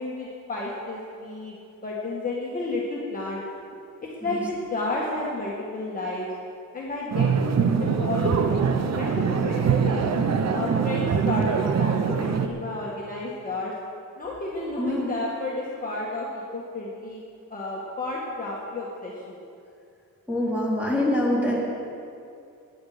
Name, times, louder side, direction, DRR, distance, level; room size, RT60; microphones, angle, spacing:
voice 1, 0.0-3.4 4.0-6.3 6.7-10.0 10.5-13.7 14.2-16.3 16.5-17.2 17.5-19.4, left 2 dB, 25° left, -5 dB, 1.7 m, -32 dB
sound 1, 7.1-12.5, right 6 dB, 50° right, 0.9 m, -23 dB
voice 2, 14.8-15.1 20.3-21.6, left 1 dB, 5° right, -6 dB, 3.5 m, -25 dB
19.0 x 10.5 x 5.1 m, 2.5 s
wide cardioid pair, 165°, 35 cm